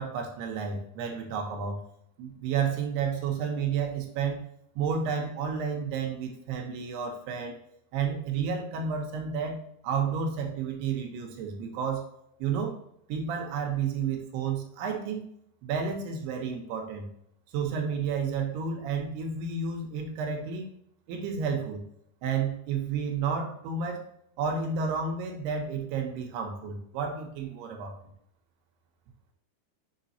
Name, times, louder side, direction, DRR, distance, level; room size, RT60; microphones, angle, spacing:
voice 1, 0.0-1.8 2.2-4.4 4.8-7.6 7.9-12.0 12.4-12.7 13.1-15.2 15.6-17.1 17.5-20.7 21.1-21.8 22.2-24.0 24.4-28.0, right 6 dB, 85° right, 2 dB, 3.0 m, -31 dB
7.2 x 5.1 x 2.8 m, 0.74 s
omnidirectional pair, 4.6 m